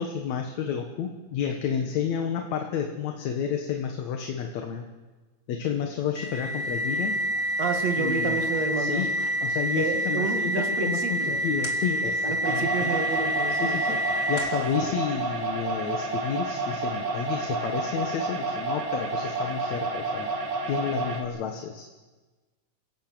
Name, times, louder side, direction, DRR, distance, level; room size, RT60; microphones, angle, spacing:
voice 1, 0.0-4.9 5.5-7.2 8.0-8.4 8.8-9.1 9.4-13.0 13.5-14.0 14.3-20.3 20.7-21.9, left 7 dB, 65° left, 4 dB, 2.4 m, -31 dB
sound 1, 6.1-14.7, equal, 30° left, 3.3 m, -28 dB
voice 2, 7.6-9.1 9.8-11.4 12.2-14.0, right 4 dB, 55° right, 5 dB, 3.0 m, -30 dB
sound 2, 12.4-21.2, right 3 dB, 80° right, 4.1 m, -30 dB
27.0 x 17.5 x 7.5 m, 1.3 s
omnidirectional pair, 3.8 m